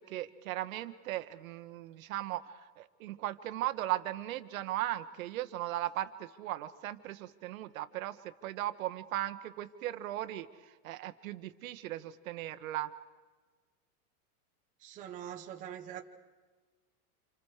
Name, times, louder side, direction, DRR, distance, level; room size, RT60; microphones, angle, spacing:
voice 1, 0.0-8.2 8.4-12.9, right 14 dB, 60° right, 10 dB, 1.4 m, -37 dB
voice 2, 14.8-16.0, right 10 dB, 15° right, 1 dB, 1.0 m, -43 dB
30.0 x 28.0 x 5.0 m, 1.3 s
supercardioid pair, 180°, 47 cm